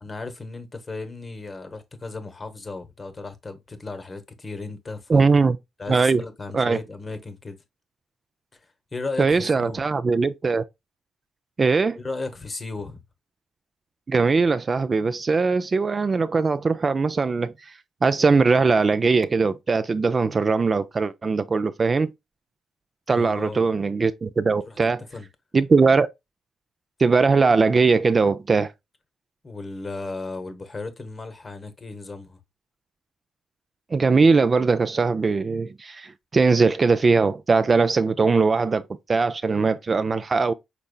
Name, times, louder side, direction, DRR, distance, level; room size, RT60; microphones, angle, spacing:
voice 1, 0.0-5.2 5.8-7.6 8.9-9.8 11.9-13.0 23.1-23.7 24.7-25.3 29.4-32.4, left 3 dB, 30° left, 0.9 m, -35 dB
voice 2, 5.1-5.6 5.9-6.2 6.5-6.8 9.2-10.6 11.6-12.0 14.1-17.7 18.0-22.1 23.1-25.0 25.5-26.1 27.0-28.7 33.9-38.8 39.1-40.5, right 4 dB, 35° right, 0.4 m, -20 dB
5.1 x 4.2 x 2.2 m
cardioid pair, 90°, 0 cm